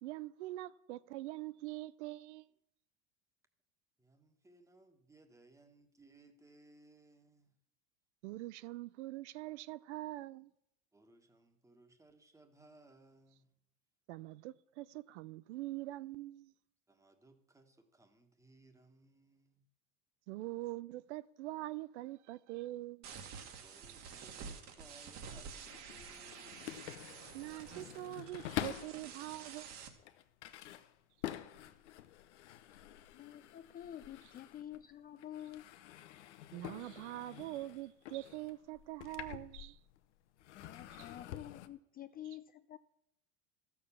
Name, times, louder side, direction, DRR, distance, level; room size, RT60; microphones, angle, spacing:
voice 1, 0.0-2.5 8.2-10.5 14.1-16.5 20.3-23.1 27.3-29.7 36.5-39.8, right 17 dB, 85° right, 0.6 m, -44 dB
voice 2, 4.0-7.5 10.9-13.6 16.9-19.6 23.6-26.8, right 2 dB, 10° right, 1.5 m, -63 dB
sound 1, 23.0-29.9, right 6 dB, 50° right, 1.9 m, -50 dB
sound 2, 25.1-29.1 29.7-34.9 35.2-40.0 40.4-41.7, left 12 dB, 90° left, 0.9 m, -47 dB
voice 3, 33.1-35.7 40.5-42.8, left 11 dB, 25° left, 0.4 m, -49 dB
13.0 x 7.2 x 7.2 m
supercardioid pair, 110°, 34 cm